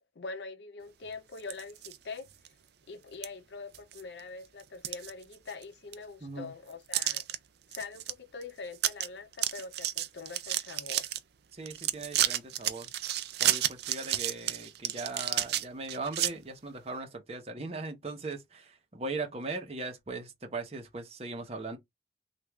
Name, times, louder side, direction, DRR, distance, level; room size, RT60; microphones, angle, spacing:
voice 1, 0.0-2.3 2.9-7.3 7.7-11.1, left 4 dB, 65° left, 0.5 m, -44 dB
sound 1, 1.4-2.0 2.4-2.5 3.2-3.3 3.7-4.2 4.6-5.6 5.9-6.0 6.9-7.4 7.7-8.1 8.4-8.5 8.8-9.1 9.3-11.2 11.7-16.3, right 12 dB, 60° right, 0.4 m, -31 dB
voice 2, 6.2-6.5 11.5-12.9 13.4-21.8, right 3 dB, 35° right, 0.8 m, -39 dB
3.1 x 2.4 x 3.4 m
head